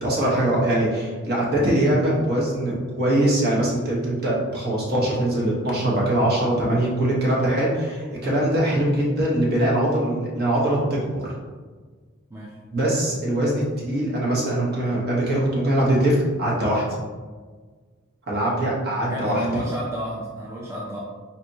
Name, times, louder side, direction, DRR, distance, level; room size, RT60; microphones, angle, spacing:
voice 1, 0.0-11.3 12.7-16.9 18.3-19.4, right 1 dB, 50° right, -4 dB, 1.2 m, -22 dB
voice 2, 19.0-21.0, right 1 dB, 15° right, -5 dB, 0.5 m, -31 dB
4.2 x 3.4 x 2.8 m, 1.4 s
head